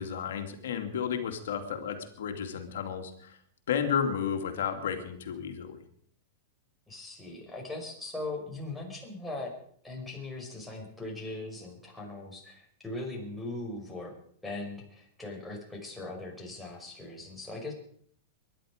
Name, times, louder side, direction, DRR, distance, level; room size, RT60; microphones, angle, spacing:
voice 1, 0.0-3.4 3.7-5.8, left 7 dB, 75° left, 6 dB, 2.5 m, -32 dB
voice 2, 6.9-9.5 9.8-14.1 14.4-17.7, left 2 dB, 5° left, -1 dB, 5.7 m, -40 dB
23.5 x 11.0 x 5.1 m, 0.62 s
hypercardioid pair, 110°, 0 cm